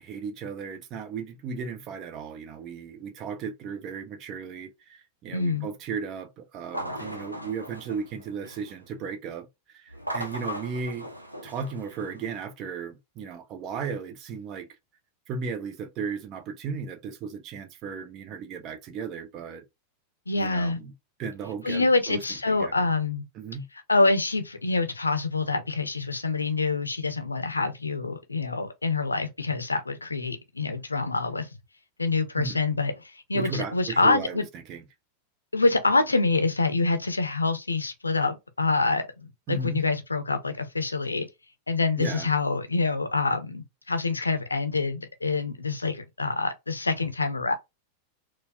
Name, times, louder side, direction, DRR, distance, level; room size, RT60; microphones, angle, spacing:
voice 1, 0.0-11.1 11.4-14.7 15.3-19.6 20.4-20.9 21.2-22.7 23.3-23.7 32.4-32.6 33.3-34.8 39.5-39.8 42.0-42.3, right 5 dB, 35° right, 0.7 m, -35 dB
voice 2, 5.3-5.7 20.3-20.8 21.6-23.3 23.9-31.5 32.0-34.4 35.5-41.3 41.7-47.5, left 3 dB, 80° left, 0.6 m, -26 dB
sound 1, 6.6-8.8 9.9-12.4, equal, 85° right, 0.7 m, -38 dB
4.3 x 2.3 x 2.3 m
figure-of-eight pair, 90°, 0 cm